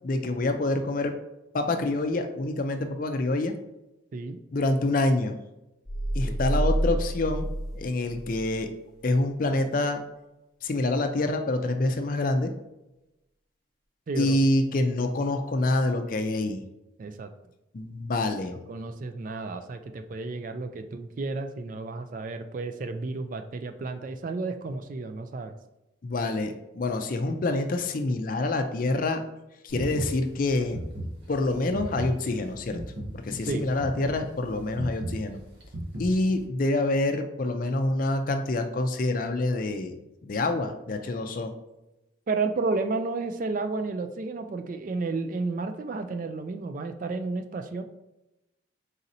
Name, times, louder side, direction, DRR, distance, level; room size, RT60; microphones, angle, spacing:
voice 1, 0.0-1.1 1.5-3.5 4.5-5.4 6.1-7.5 7.7-8.7 9.0-10.0 10.6-12.5 14.2-16.6 17.7-18.6 26.0-29.2 29.6-30.8 31.3-32.8 33.1-35.4 36.0-39.9 40.2-41.5, left 2 dB, 45° left, 6 dB, 0.4 m, -26 dB
sound 1, 5.9-8.6, right 1 dB, 5° right, 1.0 m, -28 dB
voice 2, 14.1-14.4 17.0-17.3 18.7-25.5 33.5-33.6 42.3-47.8, right 3 dB, 40° right, 8 dB, 0.3 m, -32 dB
sound 2, 29.7-36.4, right 1 dB, 60° right, 1.1 m, -37 dB
4.1 x 4.0 x 2.6 m, 0.94 s
head